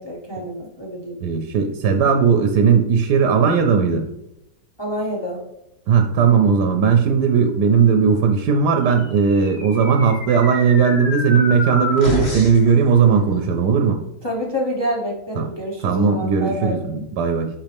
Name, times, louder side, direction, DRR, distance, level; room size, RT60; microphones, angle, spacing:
voice 1, 0.0-1.2 4.8-5.4 14.2-16.7, equal, 15° left, -2 dB, 1.1 m, -27 dB
voice 2, 1.2-4.0 5.9-14.0 15.3-15.5 15.8-17.5, right 6 dB, 75° right, 5 dB, 1.2 m, -17 dB
sound 1, 9.1-12.7, left 1 dB, 40° left, 1.8 m, -28 dB
8.2 x 5.2 x 3.5 m, 0.89 s
omnidirectional pair, 1.8 m